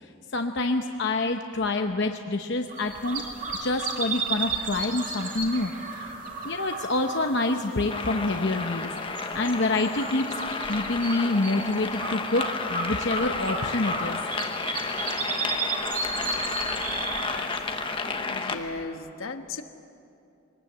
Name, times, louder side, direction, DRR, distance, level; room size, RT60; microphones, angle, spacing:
voice 1, 0.3-3.2 3.6-6.1 6.4-10.3 10.7-14.2, left 2 dB, 55° left, 5 dB, 0.8 m, -27 dB
sound 1, 2.7-18.7, right 3 dB, 40° right, 2.5 m, -34 dB
sound 2, 7.9-18.6, left 4 dB, 25° left, 1.0 m, -32 dB
voice 2, 18.3-19.6, left 3 dB, 80° left, 7 dB, 1.3 m, -36 dB
23.5 x 19.0 x 8.0 m, 2.7 s
head